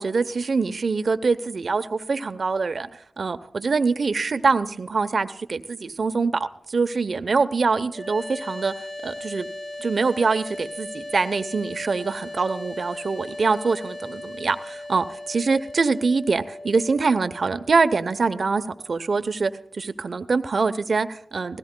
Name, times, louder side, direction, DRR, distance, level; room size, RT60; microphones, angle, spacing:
voice 1, 0.0-2.9 3.2-8.7 9.0-9.5 9.8-18.6 18.9-21.6, right 4 dB, 65° right, 10 dB, 0.8 m, -24 dB
sound 1, 7.9-19.0, left 1 dB, 55° left, 2.2 m, -38 dB
20.0 x 16.5 x 2.2 m, 0.69 s
cardioid pair, 45°, 0 cm